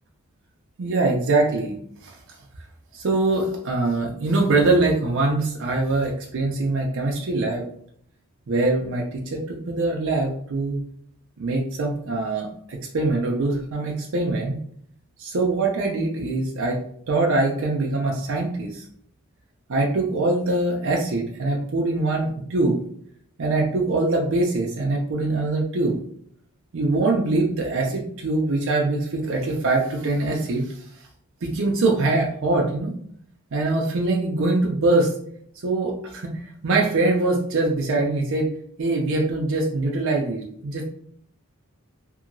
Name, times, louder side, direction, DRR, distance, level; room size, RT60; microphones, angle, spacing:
voice 1, 0.8-1.8 2.0-2.2 2.9-7.6 8.5-10.8 11.4-14.6 15.2-16.8 17.1-18.9 19.7-22.8 23.4-26.0 26.7-30.8 31.4-33.0 33.5-35.1 35.6-38.5 38.8-40.8, right 2 dB, 60° right, -1 dB, 0.5 m, -23 dB
2.9 x 2.6 x 2.6 m, 0.63 s
head